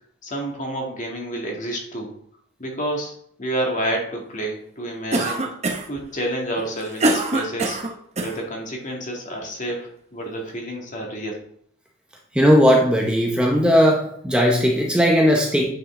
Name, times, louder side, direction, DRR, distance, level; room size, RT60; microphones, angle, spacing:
voice 1, 0.2-2.1 2.6-3.1 3.4-5.5 5.9-7.8 8.2-11.4, right 1 dB, 35° left, 0 dB, 1.9 m, -29 dB
Cough, 5.1-6.0 6.6-8.4, right 2 dB, 30° right, 0.9 m, -23 dB
voice 2, 12.3-15.7, equal, 5° right, -1 dB, 0.8 m, -17 dB
9.0 x 5.4 x 3.8 m, 0.66 s
head